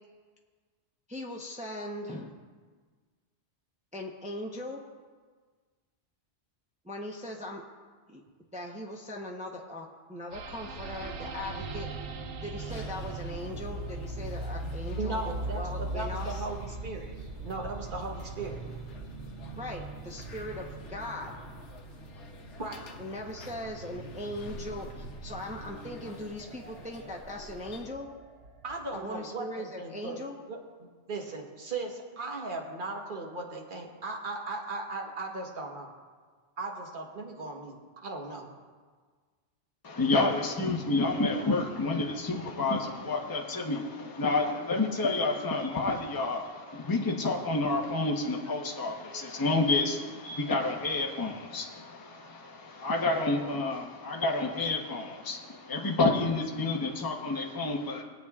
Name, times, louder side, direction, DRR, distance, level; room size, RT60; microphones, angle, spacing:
voice 1, 1.1-2.3 3.9-4.8 6.8-7.6 8.1-8.2 8.5-11.9 12.4-16.5 19.6-21.3 23.0-28.1 28.9-30.3, left 1 dB, 10° right, 0 dB, 0.7 m, -39 dB
sound 1, 10.3-29.0, right 3 dB, 80° right, 1.0 m, -41 dB
sound 2, 12.6-27.9, left 2 dB, 85° left, 1.1 m, -48 dB
voice 2, 15.0-17.2 17.4-18.6 22.6-22.8 28.6-30.2 30.5-35.9 36.6-38.5, right 3 dB, 50° right, 0 dB, 1.4 m, -37 dB
voice 3, 39.8-58.0, left 3 dB, 20° left, 0 dB, 0.9 m, -29 dB
22.0 x 8.2 x 2.4 m, 1.5 s
omnidirectional pair, 1.1 m